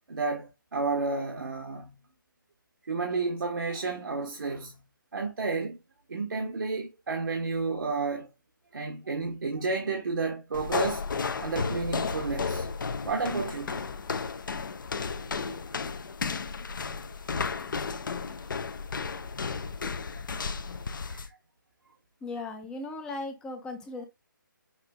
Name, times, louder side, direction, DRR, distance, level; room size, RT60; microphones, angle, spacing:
voice 1, 0.1-2.0 2.9-4.8 5.1-5.8 6.1-8.3 8.7-11.0 11.4-12.7 13.0-13.8 20.1-20.2 21.0-21.3, right 4 dB, 75° right, 1.0 m, -31 dB
sound 1, 10.5-21.3, left 5 dB, 65° left, 0.7 m, -33 dB
voice 2, 22.2-24.0, left 2 dB, 5° left, 0.4 m, -37 dB
5.8 x 2.6 x 3.3 m
figure-of-eight pair, 155°, 11 cm